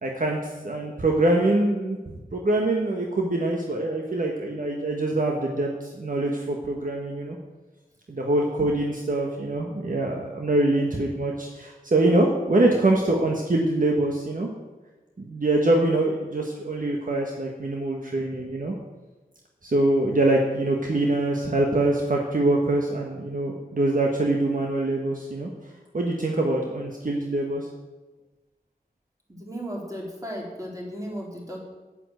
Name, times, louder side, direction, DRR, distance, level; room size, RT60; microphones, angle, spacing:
voice 1, 0.0-7.4 8.1-14.5 15.2-18.7 19.6-25.5 25.9-27.7, right 2 dB, 60° right, 0 dB, 1.5 m, -24 dB
voice 2, 29.3-31.6, equal, 20° right, -3 dB, 3.9 m, -35 dB
9.1 x 9.0 x 7.9 m, 1.2 s
wide cardioid pair, 65°, 16 cm